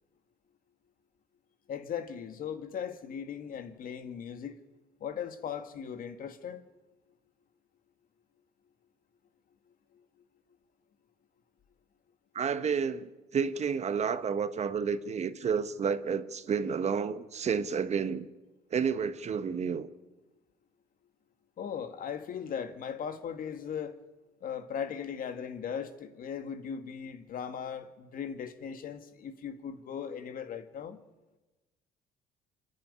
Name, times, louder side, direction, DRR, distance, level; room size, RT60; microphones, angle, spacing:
voice 1, 1.7-4.6 5.0-6.6 9.9-10.0 21.6-24.0 24.4-31.0, left 7 dB, 55° left, 1.9 m, -38 dB
voice 2, 12.3-18.2 18.7-19.9, right 6 dB, 40° right, 1.2 m, -30 dB
27.0 x 10.5 x 9.9 m
cardioid pair, 110°, 17 cm